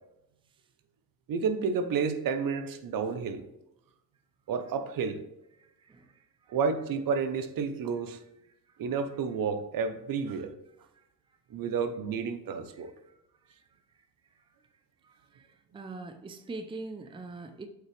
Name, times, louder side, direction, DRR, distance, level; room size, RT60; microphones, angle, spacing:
voice 1, 1.3-3.4 4.5-5.2 6.5-8.2 8.8-10.5 11.5-12.9, right 5 dB, 60° right, 0.9 m, -30 dB
voice 2, 5.6-6.6 12.8-13.1 13.5-13.6 15.0-15.5 15.7-17.7, right 3 dB, 15° right, 0.5 m, -43 dB
7.4 x 5.6 x 3.3 m
cardioid pair, 110°, 38 cm